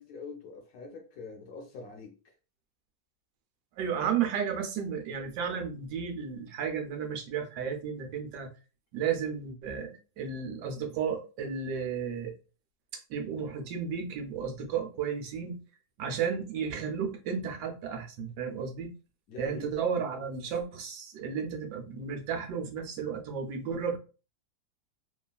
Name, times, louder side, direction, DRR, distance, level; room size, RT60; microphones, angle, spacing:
voice 1, 0.0-2.2 19.3-19.7, left 4 dB, 70° left, 0.9 m, -44 dB
voice 2, 3.8-8.5 8.9-12.3 12.9-15.6 16.0-18.9 19.4-24.0, right 7 dB, 80° right, 1.2 m, -33 dB
3.0 x 2.3 x 2.3 m
omnidirectional pair, 1.8 m